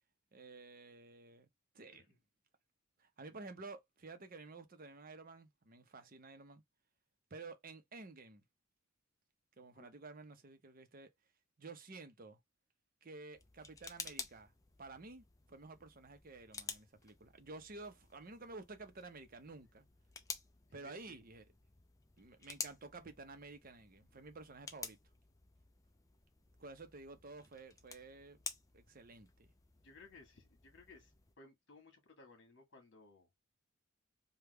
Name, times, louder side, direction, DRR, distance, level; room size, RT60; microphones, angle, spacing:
voice 1, 0.3-1.5 1.7-2.1 3.0-6.6 7.3-8.4 9.6-11.1 11.6-12.4 13.0-14.5 14.8-19.9 20.7-21.4 22.2-25.0 26.6-28.4 28.7-29.5, right 3 dB, 45° right, 0.7 m, -52 dB
sound 1, 13.3-31.3, left 5 dB, 15° left, 0.4 m, -52 dB
voice 2, 20.7-21.2 29.8-31.1 31.4-33.3, left 3 dB, 60° left, 1.5 m, -60 dB
3.4 x 2.2 x 3.3 m
head